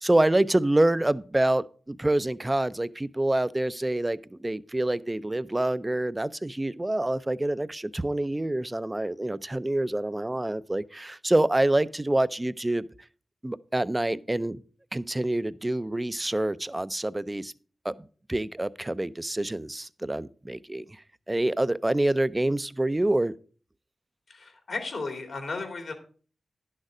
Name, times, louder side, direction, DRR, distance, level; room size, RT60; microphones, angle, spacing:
voice 1, 0.0-12.8 13.4-14.6 14.9-17.5 17.8-17.9 18.3-23.3, right 1 dB, 20° right, 0.5 m, -26 dB
voice 2, 24.3-25.9, left 3 dB, 75° left, 2.4 m, -34 dB
10.5 x 6.6 x 4.9 m
cardioid pair, 50°, 0 cm